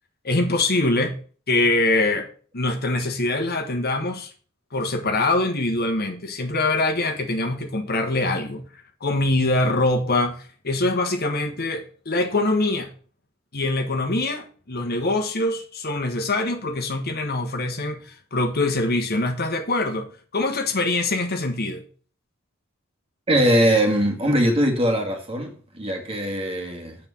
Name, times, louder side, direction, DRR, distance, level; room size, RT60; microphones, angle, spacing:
voice 1, 0.2-1.1 1.5-2.3 2.5-4.3 4.7-8.6 9.0-10.4 10.6-12.9 13.5-21.8, left 2 dB, 50° left, 1.3 m, -23 dB
voice 2, 23.3-27.0, equal, 30° right, 1.8 m, -21 dB
8.1 x 4.5 x 7.1 m
head